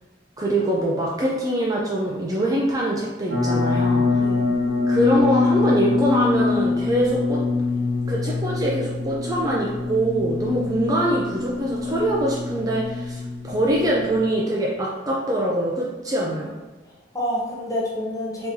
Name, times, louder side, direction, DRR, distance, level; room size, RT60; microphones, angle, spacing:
voice 1, 0.4-4.2 4.9-7.4 8.1-16.5, right 1 dB, 20° right, -3 dB, 0.3 m, -23 dB
sound 1, 3.3-14.2, left 3 dB, 55° right, 0.9 m, -24 dB
voice 2, 4.2-4.5 16.9-18.5, equal, 20° left, -4 dB, 0.7 m, -28 dB
3.6 x 2.9 x 2.7 m, 1.2 s
head